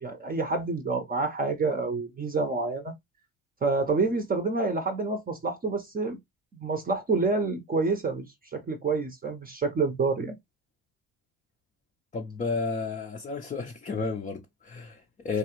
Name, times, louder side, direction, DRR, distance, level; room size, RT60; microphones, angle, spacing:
voice 1, 0.0-2.9 3.6-6.2 6.5-10.3, right 3 dB, 25° right, 0.7 m, -28 dB
voice 2, 12.1-15.4, left 4 dB, 20° left, 0.5 m, -32 dB
2.9 x 2.4 x 2.9 m
hypercardioid pair, 70°, 35 cm